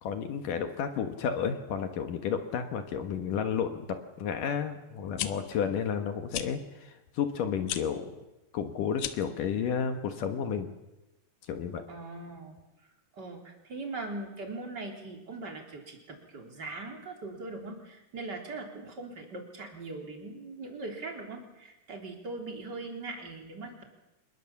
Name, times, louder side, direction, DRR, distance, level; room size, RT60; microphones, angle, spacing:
voice 1, 0.0-8.2 8.5-10.7 11.5-11.8, left 7 dB, 60° left, 7 dB, 2.6 m, -32 dB
sound 1, 5.0-5.3 6.3-6.5 7.6-7.8 8.9-9.3, left 12 dB, 80° left, 3.1 m, -34 dB
voice 2, 11.9-12.6 13.1-23.8, right 3 dB, 25° right, 2 dB, 3.6 m, -40 dB
26.5 x 21.0 x 7.2 m, 0.99 s
omnidirectional pair, 4.8 m